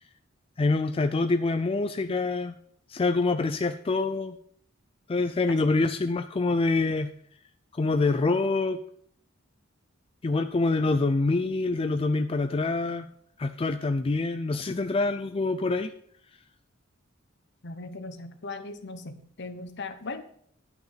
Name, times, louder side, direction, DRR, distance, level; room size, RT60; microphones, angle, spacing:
voice 1, 0.6-2.5 2.9-4.4 5.1-7.1 7.7-8.8 10.2-13.1 13.4-15.9, left 3 dB, 30° left, 8 dB, 0.4 m, -26 dB
voice 2, 17.6-20.2, left 3 dB, 60° left, 9 dB, 1.0 m, -38 dB
11.0 x 5.9 x 5.7 m, 0.63 s
head